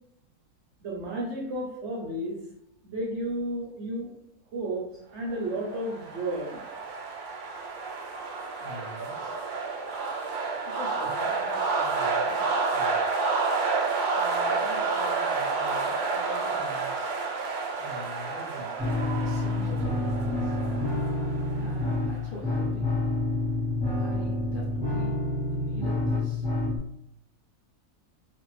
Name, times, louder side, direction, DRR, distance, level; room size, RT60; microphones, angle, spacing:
voice 1, 0.8-2.4 2.8-4.1 4.5-4.9 5.1-6.6, right 1 dB, 55° right, -2 dB, 0.9 m, -32 dB
sound 1, 5.5-22.2, right 4 dB, 75° right, 1.1 m, -30 dB
voice 2, 8.6-9.4 10.6-13.2 14.2-17.1 17.8-18.7 19.2-20.6 21.5-23.0 24.0-25.2 25.5-26.5, left 1 dB, 80° left, -4 dB, 0.4 m, -44 dB
sound 2, 18.8-26.8, left 2 dB, 20° right, 1.0 m, -28 dB
2.5 x 2.5 x 3.1 m, 0.78 s
omnidirectional pair, 1.7 m